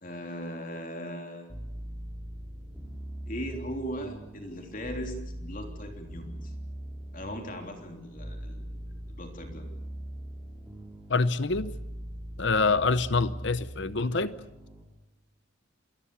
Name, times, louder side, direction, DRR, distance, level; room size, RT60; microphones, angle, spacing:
voice 1, 0.0-1.5 3.3-6.5 7.1-9.7, equal, 40° left, 3 dB, 3.5 m, -39 dB
sound 1, 1.5-14.8, equal, 5° right, 5.8 m, -41 dB
voice 2, 11.1-11.7 12.4-14.4, left 3 dB, 60° left, 14 dB, 0.8 m, -26 dB
27.5 x 21.5 x 7.1 m, 0.89 s
head